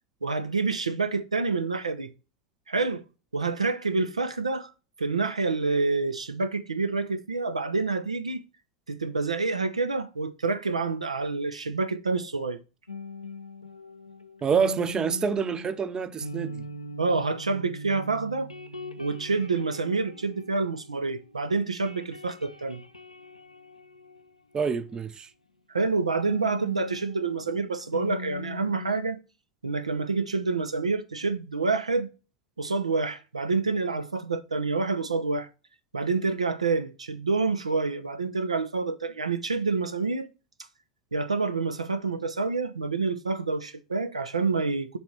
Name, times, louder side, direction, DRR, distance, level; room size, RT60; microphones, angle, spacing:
voice 1, 0.2-2.1 2.7-3.0 3.3-4.7 5.0-8.4 8.9-12.6 17.0-18.5 19.0-22.8 25.7-29.2 29.6-32.1 32.6-35.5 35.9-40.3 41.1-45.0, right 3 dB, 80° right, 0.6 m, -27 dB
sound 1, 12.9-21.4 21.6-25.1 26.3-28.9, left 1 dB, 85° left, 0.6 m, -41 dB
voice 2, 14.4-16.6 24.5-25.3, right 6 dB, 20° right, 0.5 m, -27 dB
6.8 x 3.4 x 5.8 m
figure-of-eight pair, 80°, 3 cm